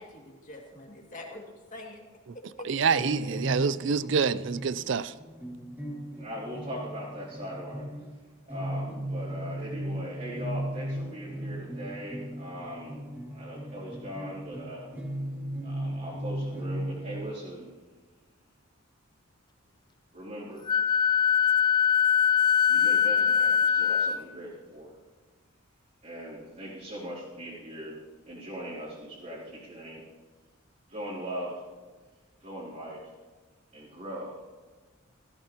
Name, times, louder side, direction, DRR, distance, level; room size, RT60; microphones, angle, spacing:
voice 1, 0.0-1.4 1.7-2.1 2.6-3.6, left 1 dB, 40° left, 0 dB, 2.3 m, -44 dB
voice 2, 2.6-5.1, right 5 dB, 60° right, 15 dB, 0.5 m, -27 dB
sound 1, 3.0-8.1 8.5-17.2, right 1 dB, 10° right, 1.8 m, -36 dB
voice 3, 6.2-7.9 8.5-13.0 13.3-14.9 15.6-17.7 20.1-20.7 22.7-24.9 26.0-28.0 28.2-30.1 30.9-31.6 32.4-33.1 33.7-34.4, equal, 35° right, -8 dB, 2.8 m, -40 dB
Wind instrument woodwind instrument, 20.7-24.2, left 7 dB, 20° left, 0.3 m, -22 dB
17.0 x 15.0 x 3.0 m, 1.3 s
head